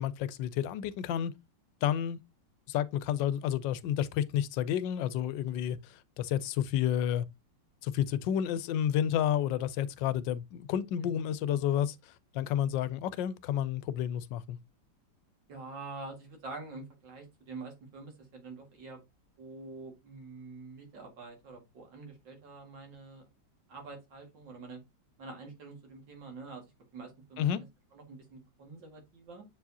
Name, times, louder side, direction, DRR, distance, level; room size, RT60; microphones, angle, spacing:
voice 1, 0.0-1.3 1.8-2.2 2.7-7.2 7.8-14.6 27.4-27.6, left 10 dB, 85° left, 1.3 m, -30 dB
voice 2, 15.5-19.0 19.4-23.2 23.7-24.8 25.2-26.6 26.9-27.6 27.9-29.4, right 3 dB, 85° right, 2.7 m, -46 dB
7.5 x 4.8 x 2.7 m
omnidirectional pair, 1.9 m